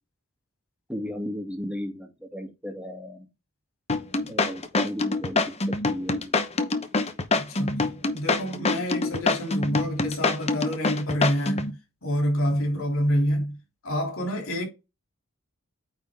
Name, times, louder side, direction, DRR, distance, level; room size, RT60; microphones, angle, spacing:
voice 1, 0.9-3.3 4.2-5.4 5.7-6.4, equal, 5° right, 2.1 m, -35 dB
sound 1, 3.9-11.7, left 3 dB, 30° left, 0.9 m, -25 dB
voice 2, 7.3-13.6 13.8-14.7, equal, 85° left, 3.1 m, -27 dB
9.2 x 4.0 x 3.5 m
head